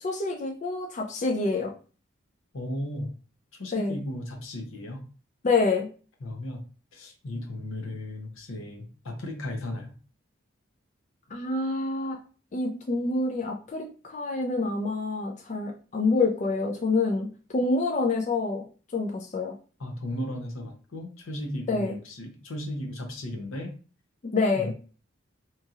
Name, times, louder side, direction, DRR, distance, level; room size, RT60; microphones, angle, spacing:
voice 1, 0.0-1.7 3.7-4.0 5.4-5.9 11.3-12.2 12.5-18.6 18.9-19.6 21.7-22.0 24.3-24.7, left 3 dB, 35° left, 2 dB, 0.3 m, -27 dB
voice 2, 2.5-3.1 3.6-5.0 6.2-6.6 6.9-9.9 19.8-23.7 24.5-24.7, left 1 dB, 85° left, 4 dB, 0.7 m, -35 dB
2.9 x 2.7 x 2.3 m, 0.38 s
head